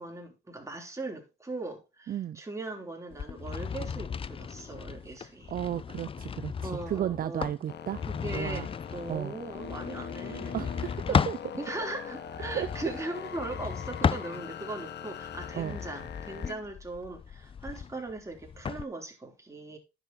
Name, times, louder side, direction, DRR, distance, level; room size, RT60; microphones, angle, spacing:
voice 1, 0.0-5.6 6.6-7.5 8.1-10.6 11.1-11.2 11.6-19.8, right 2 dB, 15° right, 3.3 m, -39 dB
voice 2, 2.1-2.4 5.5-8.0 8.3-8.7 9.1-9.3 10.5-11.4 12.5-12.7 15.5-15.8, right 10 dB, 45° right, 0.4 m, -33 dB
sound 1, 3.1-11.5 12.3-14.7 15.2-18.8, left 6 dB, 30° left, 0.4 m, -35 dB
sound 2, 7.7-16.5, left 8 dB, 60° left, 1.2 m, -42 dB
10.0 x 6.9 x 4.0 m
cardioid pair, 90°, 20 cm